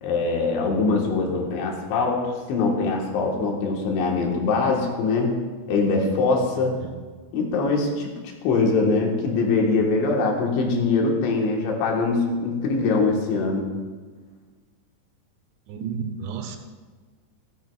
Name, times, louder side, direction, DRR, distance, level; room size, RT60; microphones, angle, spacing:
voice 1, 0.0-5.4 5.7-6.8 7.3-8.1 8.4-13.7, left 3 dB, 75° left, 0 dB, 3.6 m, -23 dB
voice 2, 15.7-16.6, right 6 dB, 80° right, 6 dB, 3.0 m, -31 dB
14.0 x 14.0 x 2.3 m, 1.4 s
omnidirectional pair, 5.4 m